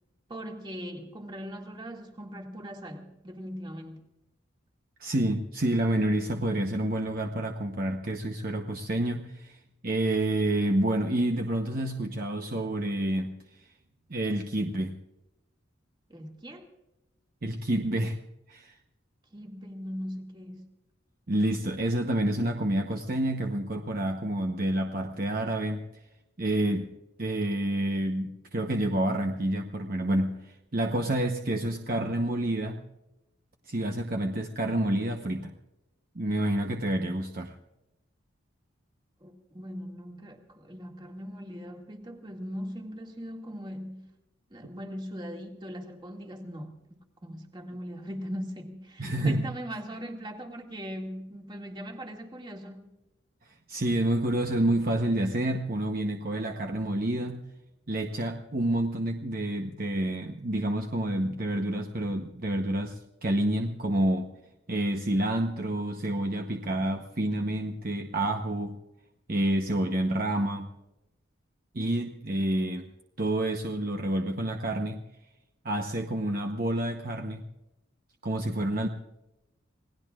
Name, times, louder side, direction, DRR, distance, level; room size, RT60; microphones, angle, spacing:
voice 1, 0.3-4.0 16.1-16.7 19.3-20.7 39.2-44.1 44.5-46.8 47.2-52.8, equal, 20° right, 1 dB, 2.1 m, -40 dB
voice 2, 5.0-13.3 13.6-13.7 14.1-14.9 17.4-18.2 18.5-18.8 21.3-25.8 26.4-26.9 27.2-32.8 33.7-35.5 36.1-37.5 49.0-49.5 53.7-57.4 57.9-64.3 64.7-68.8 69.3-70.7 71.7-72.9 73.2-75.0 75.6-77.4 78.2-78.9, right 1 dB, 45° right, 3 dB, 1.0 m, -28 dB
27.5 x 18.5 x 2.5 m, 0.94 s
head